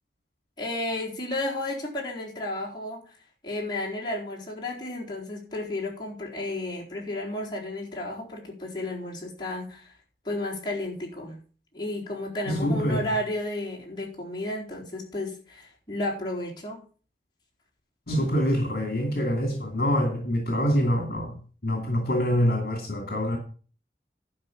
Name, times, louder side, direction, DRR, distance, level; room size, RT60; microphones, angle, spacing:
voice 1, 0.6-3.2 3.4-9.9 10.2-11.4 11.7-16.9, left 1 dB, 25° left, 4.0 m, -32 dB
voice 2, 12.5-13.1 18.1-23.4, equal, 60° left, 2.5 m, -25 dB
12.0 x 5.4 x 7.0 m
head